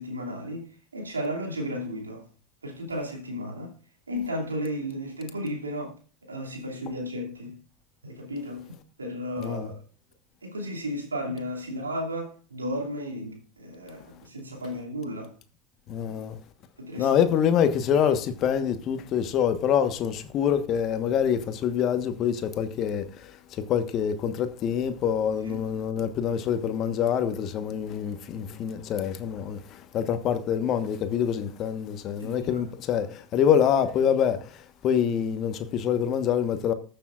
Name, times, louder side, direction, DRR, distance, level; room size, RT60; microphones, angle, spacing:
voice 1, 0.0-2.3 2.6-3.7 4.1-6.0 6.2-7.6 8.0-9.8 10.4-15.3 16.8-17.1 25.4-25.7 32.2-32.7, equal, 90° right, 2.5 m, -34 dB
voice 2, 9.4-9.7 15.9-16.4 17.0-36.7, left 8 dB, 50° left, 1.2 m, -26 dB
20.5 x 6.8 x 2.5 m
figure-of-eight pair, 75°, 0 cm